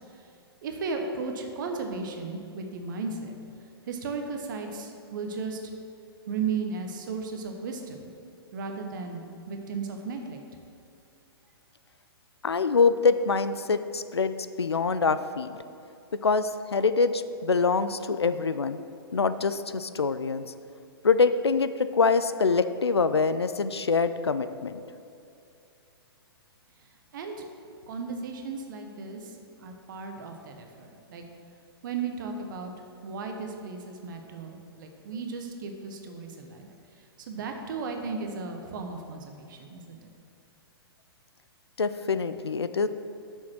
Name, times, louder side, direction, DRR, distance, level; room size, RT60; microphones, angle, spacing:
voice 1, 0.6-3.4 3.9-5.7 6.3-8.1 8.5-10.4 27.1-27.4 27.9-31.2 31.8-32.7 33.0-36.7 37.0-40.1, right 4 dB, 50° right, 4 dB, 1.0 m, -35 dB
voice 2, 12.4-15.5 16.2-18.8 19.1-20.5 21.0-24.8 41.8-42.9, left 4 dB, 85° left, 12 dB, 0.4 m, -25 dB
6.4 x 6.1 x 6.0 m, 2.6 s
figure-of-eight pair, 120°, 13 cm